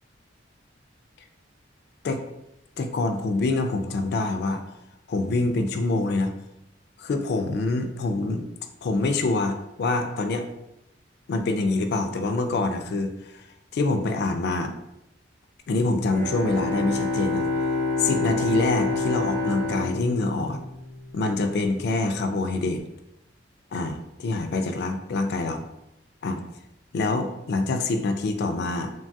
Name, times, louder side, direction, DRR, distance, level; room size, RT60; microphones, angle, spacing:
voice 1, 2.8-4.6 5.1-6.3 7.0-8.5 8.8-10.5 11.3-13.5 13.7-14.7 15.7-17.5 18.0-20.6 21.1-22.8 23.7-25.6 26.2-26.4 26.9-28.9, left 2 dB, 60° left, 7 dB, 0.3 m, -25 dB
Bowed string instrument, 16.1-21.2, left 3 dB, 45° right, 0.7 m, -28 dB
3.1 x 2.3 x 2.6 m, 0.87 s
head